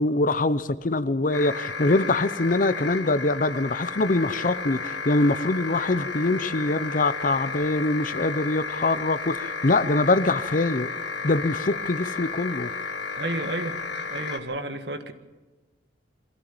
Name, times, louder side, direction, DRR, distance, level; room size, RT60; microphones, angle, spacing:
voice 1, 0.0-10.9 11.2-12.7, left 2 dB, 45° left, 15 dB, 0.7 m, -24 dB
sound 1, 1.3-14.4, left 4 dB, 70° left, 1.9 m, -33 dB
voice 2, 13.2-13.8 14.1-15.1, right 2 dB, 65° right, 8 dB, 1.7 m, -31 dB
23.0 x 15.5 x 7.2 m, 1.2 s
head